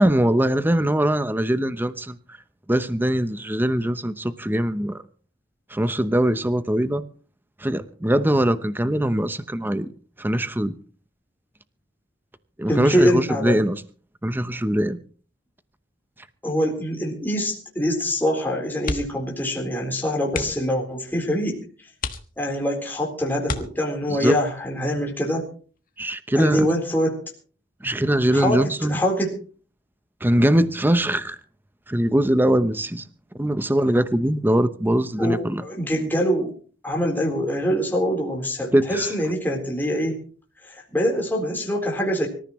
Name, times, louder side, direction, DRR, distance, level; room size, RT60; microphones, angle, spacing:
voice 1, 0.0-2.2 2.7-5.0 5.7-7.0 7.6-9.9 10.2-10.7 12.6-13.8 14.2-15.0 24.1-24.4 26.0-26.7 27.8-29.0 30.2-31.4 31.9-33.0 33.4-35.6 38.7-39.1, right 1 dB, 10° right, 12 dB, 0.8 m, -22 dB
voice 2, 12.7-13.7 16.4-21.6 22.4-25.5 26.4-27.2 28.3-28.6 28.9-29.4 35.2-36.5 36.8-40.2 40.7-42.3, equal, 10° left, -1 dB, 4.0 m, -24 dB
sound 1, 18.8-19.3 19.6-19.8 20.3-20.8 21.4-21.5 22.0-22.7 23.4-24.2 25.8-26.1 26.4-26.5, left 3 dB, 50° left, 1.5 m, -32 dB
25.0 x 14.0 x 3.1 m, 0.41 s
head